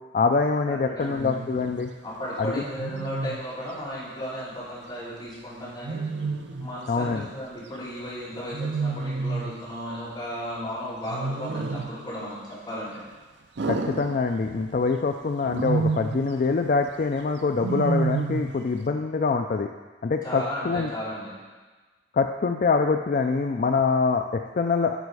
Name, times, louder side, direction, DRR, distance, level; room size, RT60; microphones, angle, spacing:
voice 1, 0.1-1.9 2.4-2.5 6.9-7.3 13.7-19.7 20.0-20.9 22.1-25.0, left 4 dB, 45° left, 5 dB, 0.3 m, -24 dB
voice 2, 0.7-1.4 2.0-6.0 6.6-12.4 12.7-13.0 20.2-21.3, equal, 25° left, -10 dB, 3.0 m, -35 dB
Wild animals, 1.2-1.6 2.8-3.5 5.8-6.7 8.5-9.6 11.1-12.0 13.6-14.7 15.4-16.3 17.6-18.6, right 3 dB, 60° right, 0.5 m, -29 dB
9.1 x 5.5 x 4.7 m, 1.3 s
head